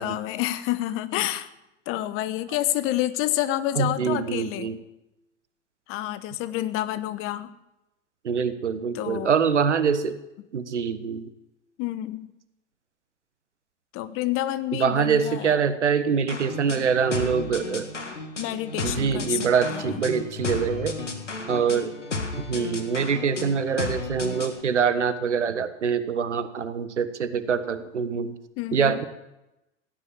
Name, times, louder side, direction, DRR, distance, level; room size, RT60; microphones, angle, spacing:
voice 1, 0.0-1.5 1.9-4.7 5.9-7.5 8.9-9.3 11.8-12.3 13.9-15.6 18.4-19.4 19.7-20.0 28.6-29.0, left 14 dB, 35° left, 14 dB, 1.1 m, -28 dB
voice 2, 3.8-4.8 8.2-10.2 10.5-11.3 14.7-17.8 18.8-20.9 21.5-21.9 22.5-28.3 28.7-29.0, right 6 dB, 75° right, 12 dB, 1.4 m, -24 dB
sound 1, 16.3-24.6, left 3 dB, 85° left, 2.1 m, -33 dB
16.5 x 10.0 x 7.3 m, 0.92 s
figure-of-eight pair, 90°, 35 cm